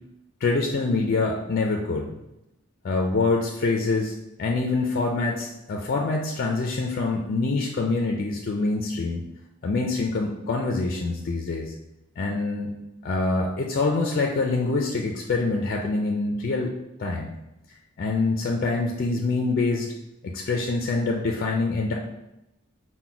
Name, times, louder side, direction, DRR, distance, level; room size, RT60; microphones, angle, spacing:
voice 1, 0.4-2.1 2.8-4.1 4.4-9.2 9.6-11.7 12.2-12.7 13.0-16.7 17.0-17.3 18.0-19.9 20.2-21.9, left 3 dB, 45° left, 1 dB, 0.4 m, -25 dB
3.9 x 2.1 x 4.4 m, 0.91 s
head